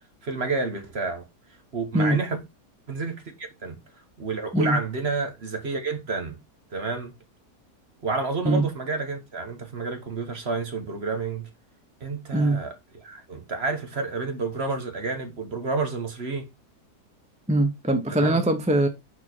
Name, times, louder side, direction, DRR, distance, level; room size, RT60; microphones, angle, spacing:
voice 1, 0.2-1.2 1.7-2.4 2.9-3.8 4.2-6.3 6.7-7.1 8.0-11.4 12.0-16.5 18.1-18.4, right 3 dB, 40° right, 1.5 m, -30 dB
voice 2, 17.5-18.9, right 1 dB, 5° right, 0.7 m, -22 dB
6.5 x 4.5 x 4.5 m
omnidirectional pair, 1.7 m